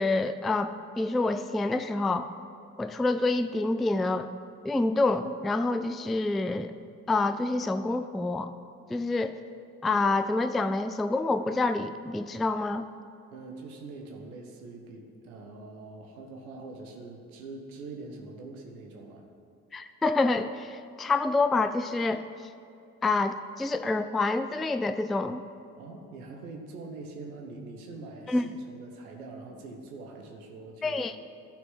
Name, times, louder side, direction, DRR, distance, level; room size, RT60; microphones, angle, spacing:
voice 1, 0.0-2.3 2.8-4.3 4.6-6.7 7.1-8.5 8.9-9.4 9.8-12.9 19.7-22.2 23.0-25.4 28.3-28.5 30.8-31.1, left 3 dB, ahead, 10 dB, 0.3 m, -27 dB
voice 2, 13.3-19.2 25.8-31.2, right 3 dB, 80° right, 2 dB, 1.3 m, -43 dB
12.0 x 6.2 x 7.8 m, 2.5 s
figure-of-eight pair, 45°, 43 cm